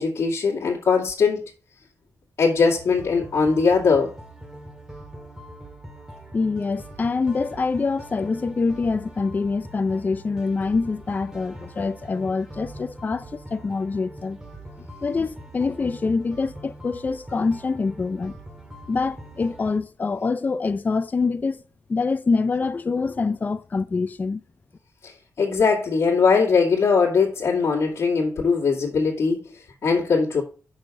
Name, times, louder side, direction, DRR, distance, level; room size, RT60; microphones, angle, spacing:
voice 1, 0.0-1.5 2.4-4.2 25.0-25.1 25.4-29.4 29.8-30.4, left 5 dB, 65° left, 2.3 m, -20 dB
sound 1, 2.8-19.8, right 1 dB, 10° right, 2.0 m, -42 dB
voice 2, 6.3-14.4 15.0-18.4 18.9-21.6 21.9-24.4, left 4 dB, 30° left, 0.5 m, -25 dB
6.5 x 6.5 x 5.0 m
wide cardioid pair, 120°, 5 cm